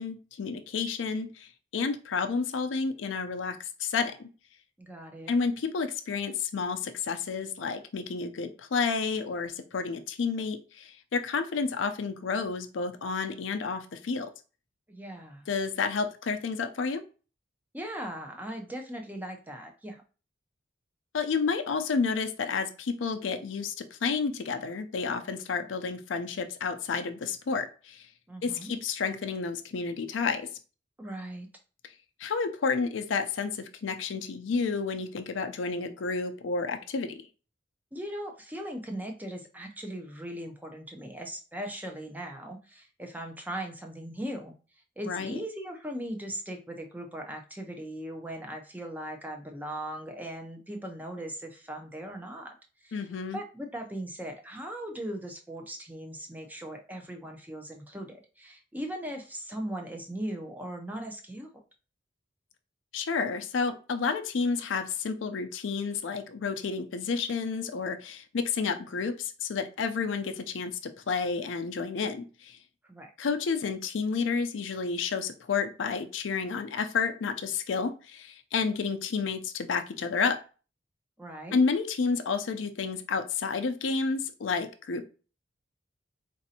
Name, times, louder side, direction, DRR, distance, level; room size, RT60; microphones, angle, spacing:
voice 1, 0.0-4.3 5.3-14.3 15.5-17.0 21.1-28.1 28.4-30.5 32.2-37.2 45.1-45.4 52.9-53.4 62.9-72.6 73.2-80.4 81.5-85.1, left 5 dB, 85° left, 8 dB, 0.5 m, -30 dB
voice 2, 4.8-5.3 14.9-15.5 17.7-20.0 28.3-28.7 31.0-31.5 37.9-44.5 45.0-52.6 52.8-53.0 53.3-61.6 72.9-73.1 81.2-81.6, right 1 dB, 10° right, 3 dB, 0.5 m, -39 dB
4.0 x 2.6 x 2.7 m, 0.36 s
head